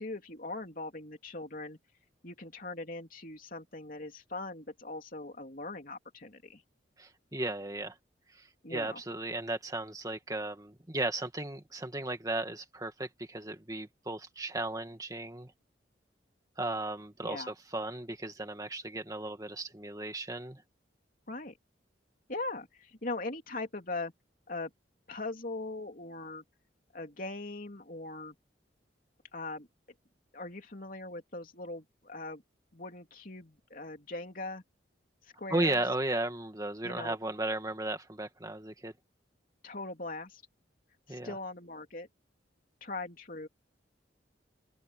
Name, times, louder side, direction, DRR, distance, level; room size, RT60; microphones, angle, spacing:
voice 1, 0.0-1.8 2.2-6.6 8.6-9.0 17.2-17.5 21.3-21.6 22.3-24.1 24.5-24.7 25.1-26.4 26.9-28.3 29.3-29.7 30.3-32.4 32.7-34.6 35.4-35.8 36.8-37.2 39.6-40.4 41.1-42.1 42.8-43.5, left 2 dB, 50° left, 3.2 m, -40 dB
voice 2, 7.0-8.0 8.3-15.5 16.6-20.6 35.5-38.9 41.1-41.3, right 2 dB, 20° right, 2.2 m, -35 dB
open air
head